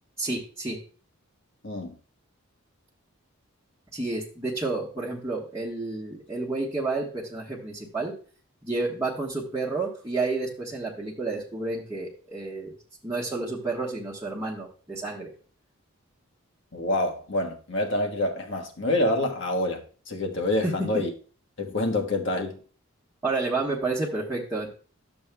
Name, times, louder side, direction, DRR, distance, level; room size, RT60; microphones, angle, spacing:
voice 1, 0.2-0.8 3.9-8.1 8.6-12.7 13.0-15.3 20.6-20.7 23.2-24.7, right 3 dB, 15° right, 1.3 m, -30 dB
voice 2, 1.6-1.9 16.7-21.1 21.6-22.6, left 1 dB, 60° left, 1.3 m, -27 dB
12.0 x 7.1 x 2.2 m
head